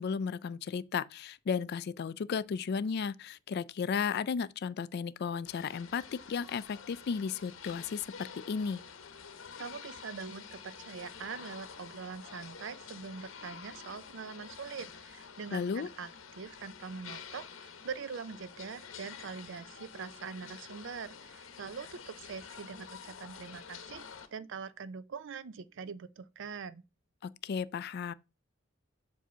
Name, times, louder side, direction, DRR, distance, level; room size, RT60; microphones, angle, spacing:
voice 1, 0.0-8.8 15.5-15.9 27.2-28.1, left 6 dB, 55° left, 0.3 m, -34 dB
sound 1, 5.5-24.3, left 6 dB, 80° left, 0.8 m, -49 dB
voice 2, 9.6-16.1 16.3-24.0 24.3-26.8, right 5 dB, 65° right, 0.5 m, -43 dB
7.5 x 2.7 x 5.5 m
head